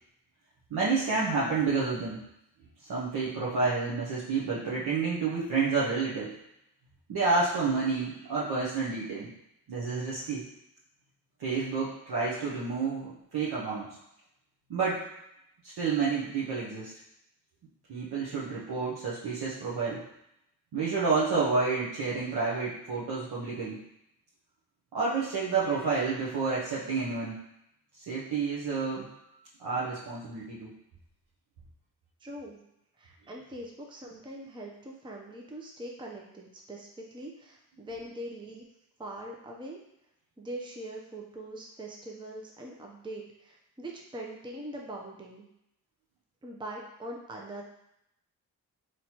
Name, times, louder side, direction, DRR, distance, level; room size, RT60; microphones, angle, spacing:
voice 1, 0.7-2.2 2.9-6.4 7.1-9.3 9.7-10.4 11.4-13.9 14.7-15.0 15.6-16.9 17.9-20.0 20.7-23.8 24.9-27.4 27.9-29.1 29.6-30.7, right 4 dB, 70° right, -7 dB, 1.0 m, -29 dB
voice 2, 32.2-32.6 33.0-38.7 39.0-39.8 40.4-45.4 46.4-47.6, right 1 dB, 10° right, -1 dB, 0.6 m, -42 dB
4.1 x 3.1 x 2.9 m, 0.81 s
cardioid pair, 60°, 40 cm